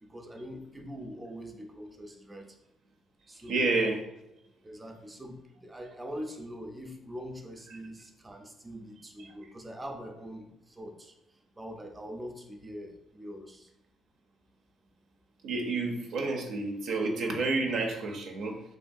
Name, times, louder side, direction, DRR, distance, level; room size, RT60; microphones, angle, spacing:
voice 1, 0.0-2.6 3.3-3.7 4.6-11.1 11.6-13.7, equal, 15° right, 3 dB, 0.4 m, -43 dB
voice 2, 3.5-4.1 15.4-18.6, right 3 dB, 75° right, 1 dB, 0.5 m, -29 dB
3.1 x 2.3 x 2.5 m, 0.86 s
cardioid pair, 85°, 0 cm